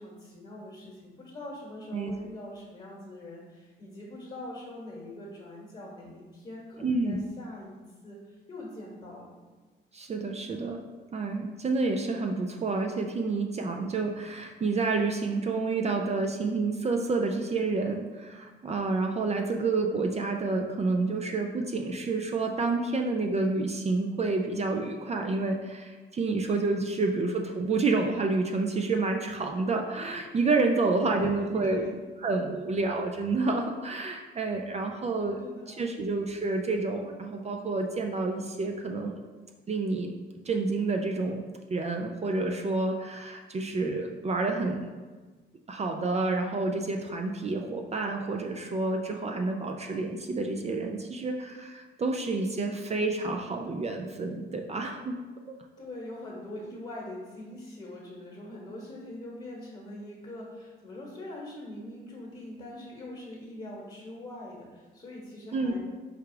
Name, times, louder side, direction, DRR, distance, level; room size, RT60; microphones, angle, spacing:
voice 1, 0.0-9.4 31.1-31.9 35.4-36.0 55.8-65.8, left 1 dB, 25° left, -4 dB, 1.1 m, -43 dB
voice 2, 6.8-7.2 9.9-10.8 11.1-31.9 32.2-35.4 35.7-39.2 39.7-40.1 40.5-41.4 41.7-44.9 45.7-55.2 65.5-65.8, right 3 dB, 35° right, 3 dB, 0.4 m, -29 dB
4.8 x 2.3 x 4.8 m, 1.3 s
cardioid pair, 90°, 20 cm